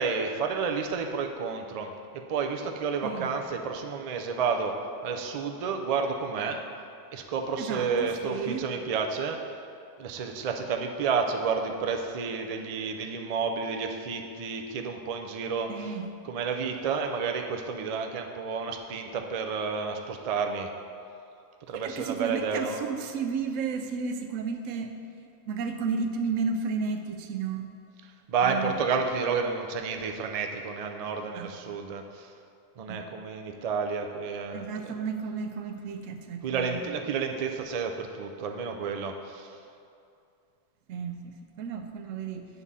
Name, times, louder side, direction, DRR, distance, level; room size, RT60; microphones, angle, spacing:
voice 1, 0.0-1.9 2.3-4.8 5.0-6.6 7.1-9.4 10.0-15.7 16.2-20.7 21.7-22.8 28.3-32.3 32.8-34.9 36.4-39.5, right 5 dB, 65° right, 4 dB, 0.3 m, -30 dB
voice 2, 3.0-3.3 7.6-8.7 15.7-16.1 21.7-24.9 25.5-27.7 28.4-28.8 31.3-31.5 32.9-33.1 34.5-36.8 40.9-42.5, right 5 dB, 90° right, 6 dB, 1.0 m, -33 dB
8.1 x 3.6 x 5.5 m, 2.5 s
omnidirectional pair, 1.3 m